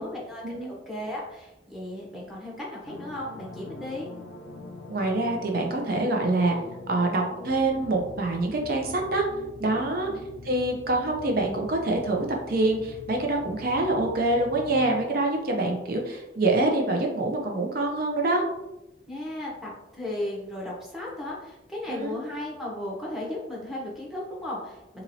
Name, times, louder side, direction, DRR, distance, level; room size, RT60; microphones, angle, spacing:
voice 1, 0.0-0.4 0.7-4.1 9.7-10.2 19.1-25.0, left 1 dB, ahead, -5 dB, 0.7 m, -35 dB
sound 1, 2.9-15.1, left 2 dB, 75° left, 0.4 m, -43 dB
voice 2, 4.9-6.6 6.9-9.3 9.6-10.1 10.4-18.4 21.9-22.2, right 2 dB, 55° right, 1 dB, 0.5 m, -25 dB
2.9 x 2.8 x 2.6 m, 0.94 s
head